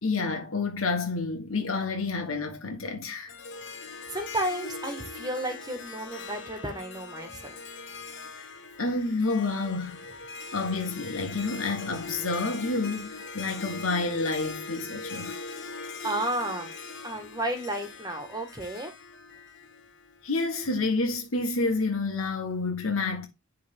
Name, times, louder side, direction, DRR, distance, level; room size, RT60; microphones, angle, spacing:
voice 1, 0.0-3.3 8.8-10.0 10.5-15.4 20.2-23.3, left 3 dB, 85° left, 1.3 m, -29 dB
Harp, 3.3-20.5, left 4 dB, 60° left, 1.1 m, -41 dB
voice 2, 4.1-7.6 16.0-16.7 17.0-18.9, right 1 dB, 20° right, 1.6 m, -32 dB
10.5 x 3.5 x 3.6 m
head